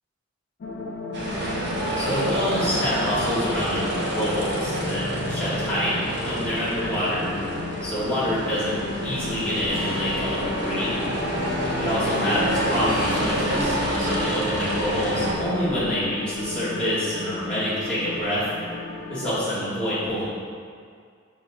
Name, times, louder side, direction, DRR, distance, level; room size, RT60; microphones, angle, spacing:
sound 1, 0.6-19.4, left 3 dB, 50° left, 0.3 m, -34 dB
sound 2, 1.1-15.4, right 1 dB, 55° right, 0.6 m, -28 dB
voice 1, 2.0-7.3 7.8-10.9 11.8-18.4 19.1-20.2, equal, 5° left, -11 dB, 1.1 m, -27 dB
sound 3, 9.1-16.5, left 1 dB, 20° right, 0.8 m, -36 dB
5.2 x 2.8 x 2.5 m, 2.1 s
head